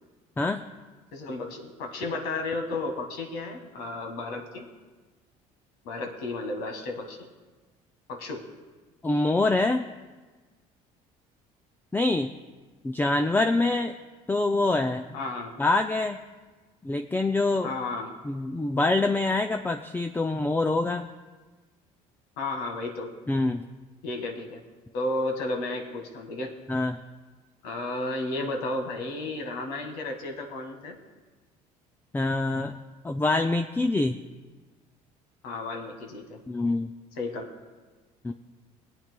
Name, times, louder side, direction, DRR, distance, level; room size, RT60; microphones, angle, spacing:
voice 1, 1.1-4.7 5.8-7.3 8.1-8.5 15.1-15.5 17.6-18.1 22.4-23.1 24.0-24.6 24.9-26.5 27.6-31.0 35.4-36.4 37.2-37.5, left 2 dB, 80° left, 4 dB, 1.6 m, -33 dB
voice 2, 9.0-9.9 11.9-12.3 12.8-14.0 14.3-15.0 15.6-16.2 16.8-17.7 18.2-21.1 23.3-23.6 26.7-27.0 32.1-32.8 33.0-34.2 36.5-36.9 38.2-38.3, left 2 dB, 10° left, 6 dB, 0.4 m, -25 dB
21.5 x 8.8 x 2.3 m, 1.3 s
supercardioid pair, 70°, 17 cm